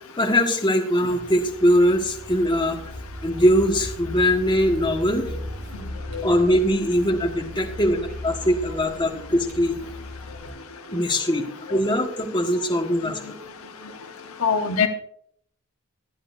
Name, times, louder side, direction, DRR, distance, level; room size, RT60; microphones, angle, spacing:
voice 1, 0.2-2.8 3.2-5.3 6.2-9.7 10.9-13.2, equal, 20° left, 1 dB, 1.5 m, -21 dB
Car, 1.2-10.5, left 1 dB, 45° right, 5.5 m, -37 dB
voice 2, 14.4-14.9, left 6 dB, 70° left, 6 dB, 1.0 m, -22 dB
24.0 x 8.7 x 2.6 m, 0.67 s
head